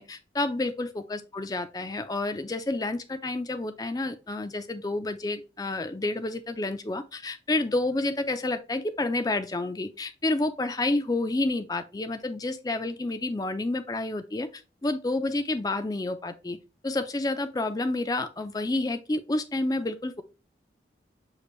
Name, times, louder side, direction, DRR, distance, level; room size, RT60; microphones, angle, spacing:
voice 1, 0.0-14.5 14.8-16.6 16.8-20.2, left 2 dB, 20° left, 0.4 m, -29 dB
6.6 x 2.6 x 3.1 m
head